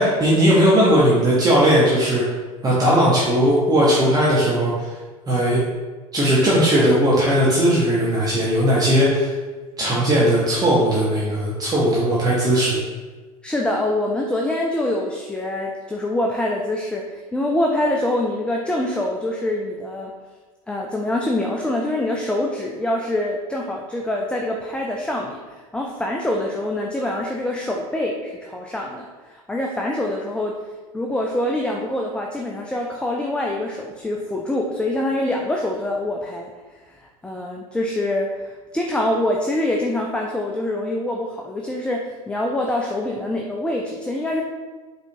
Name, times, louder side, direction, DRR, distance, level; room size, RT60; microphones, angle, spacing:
voice 1, 0.0-2.2 2.6-4.9 5.3-5.6 6.1-9.3 9.8-12.8, equal, 20° right, -6 dB, 0.9 m, -18 dB
voice 2, 13.4-20.1 20.7-30.5 30.9-36.5 37.0-44.4, left 1 dB, 5° left, 0 dB, 0.4 m, -25 dB
5.0 x 3.2 x 2.7 m, 1.3 s
figure-of-eight pair, 80°, 19 cm